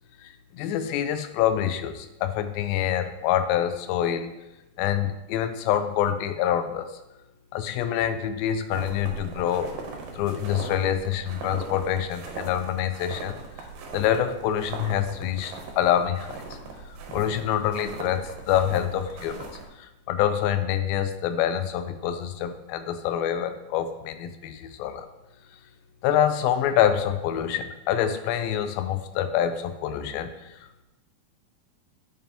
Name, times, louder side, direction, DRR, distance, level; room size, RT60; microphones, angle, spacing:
voice 1, 0.2-4.3 4.8-6.9 7.5-9.7 10.2-13.4 13.9-16.6 17.1-19.5 19.8-25.1 26.0-30.8, left 10 dB, 85° left, 10 dB, 2.4 m, -26 dB
sound 1, 8.7-19.6, right 4 dB, 75° right, 2.5 m, -39 dB
10.5 x 5.5 x 2.9 m, 0.97 s
omnidirectional pair, 4.1 m